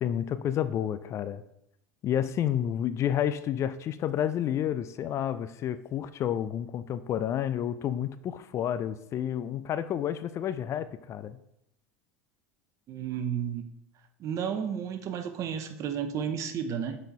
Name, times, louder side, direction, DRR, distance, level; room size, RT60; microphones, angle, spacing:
voice 1, 0.0-1.4 2.0-11.4, left 10 dB, 35° left, 0.4 m, -30 dB
voice 2, 12.9-13.7 14.2-17.0, right 8 dB, 40° right, 0.9 m, -32 dB
6.5 x 4.3 x 4.7 m
hypercardioid pair, 85°, 8 cm